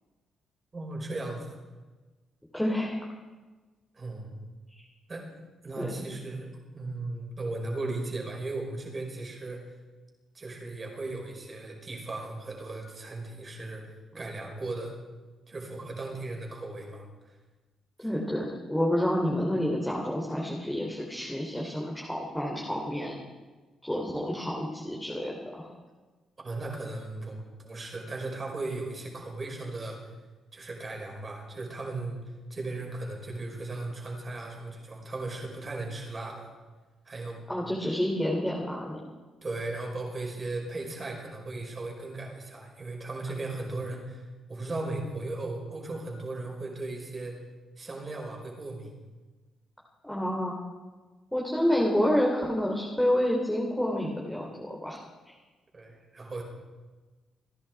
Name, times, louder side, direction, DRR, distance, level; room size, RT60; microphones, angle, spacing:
voice 1, 0.7-1.6 3.9-4.3 5.1-5.3 5.6-6.5 6.7-9.7 10.3-15.0 15.5-17.0 26.4-30.0 30.5-36.5 37.1-37.4 39.4-47.4 47.8-48.9 55.7-56.4, right 2 dB, 30° right, 0 dB, 5.4 m, -37 dB
voice 2, 2.5-3.1 4.7-4.8 5.8-6.0 18.0-23.2 23.8-25.7 37.5-39.0 50.0-50.6 51.3-55.0 55.3-55.4, equal, 5° left, -3 dB, 3.1 m, -29 dB
28.5 x 11.0 x 4.7 m, 1.3 s
cardioid pair, 90°, 0 cm